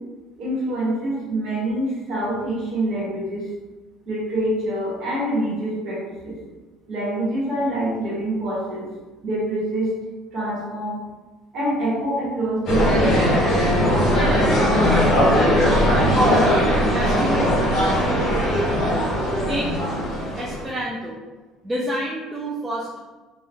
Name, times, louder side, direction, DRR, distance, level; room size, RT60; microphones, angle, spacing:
voice 1, 0.4-3.5 4.1-6.4 6.9-8.9 9.2-10.0 10.3-11.0 11.5-13.4, right 1 dB, 40° right, -7 dB, 1.3 m, -25 dB
sound 1, 12.7-20.6, equal, 35° left, 0.8 m, -19 dB
voice 2, 14.1-15.8 16.2-16.6 16.9-19.1 19.5-19.7 20.4-21.2 21.6-23.0, right 1 dB, 10° right, -5 dB, 0.3 m, -30 dB
2.7 x 2.2 x 3.5 m, 1.2 s
cardioid pair, 175°, 0 cm